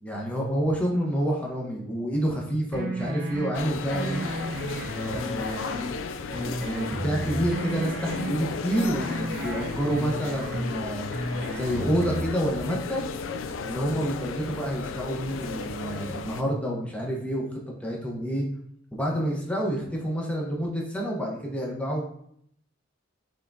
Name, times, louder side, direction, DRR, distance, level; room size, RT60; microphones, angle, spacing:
voice 1, 0.0-4.2 4.9-5.7 6.4-11.1 11.5-13.1 13.6-18.5 18.9-22.0, equal, 5° left, -2 dB, 0.8 m, -28 dB
sound 1, 2.7-3.5 3.9-5.9 6.3-8.3 8.7-10.7 11.1-12.3, right 1 dB, 50° right, 0.9 m, -33 dB
sound 2, 3.5-16.4, left 5 dB, 75° left, 0.3 m, -35 dB
5.5 x 3.5 x 2.6 m, 0.68 s
head